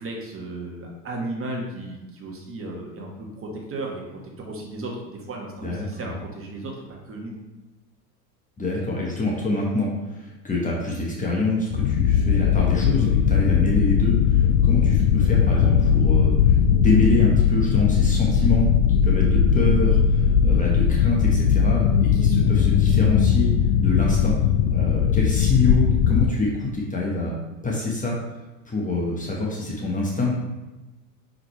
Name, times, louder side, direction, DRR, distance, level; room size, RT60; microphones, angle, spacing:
voice 1, 0.0-7.3, right 2 dB, 25° right, -1 dB, 1.5 m, -35 dB
voice 2, 5.6-6.2 8.6-16.3 16.7-18.7 19.0-23.5 23.8-24.3 24.7-27.3 27.6-28.2 28.6-30.4, left 2 dB, 15° left, -3 dB, 1.1 m, -25 dB
sound 1, 11.7-26.3, left 8 dB, 50° left, 0.6 m, -19 dB
5.8 x 5.1 x 3.2 m, 1.1 s
hypercardioid pair, 85°, 50 cm